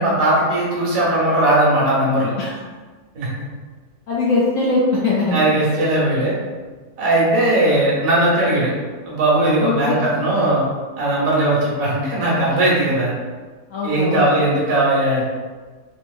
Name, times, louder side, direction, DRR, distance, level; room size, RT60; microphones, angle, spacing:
voice 1, 0.0-2.3 3.1-3.3 5.3-6.3 7.0-8.7 9.1-10.6 11.0-13.1 13.8-15.2, right 1 dB, 60° right, -5 dB, 1.3 m, -18 dB
voice 2, 4.1-5.4 9.6-10.0 13.7-14.3, left 3 dB, 70° left, -5 dB, 0.8 m, -20 dB
3.4 x 2.7 x 2.3 m, 1.4 s
omnidirectional pair, 1.8 m